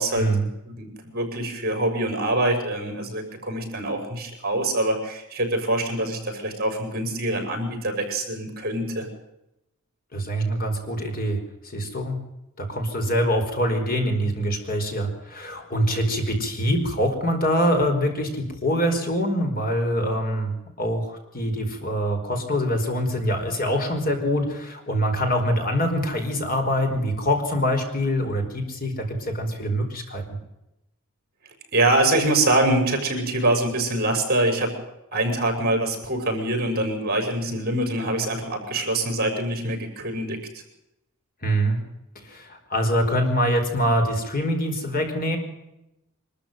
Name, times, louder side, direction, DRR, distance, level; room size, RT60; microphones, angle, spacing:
voice 1, 0.1-0.5 10.1-12.2 12.6-30.4 41.4-41.8 42.2-45.4, equal, 45° left, 4 dB, 4.8 m, -24 dB
voice 2, 0.7-9.1 31.7-34.7 35.1-40.4, right 1 dB, 45° right, 5 dB, 6.3 m, -24 dB
25.0 x 13.5 x 9.3 m, 0.89 s
head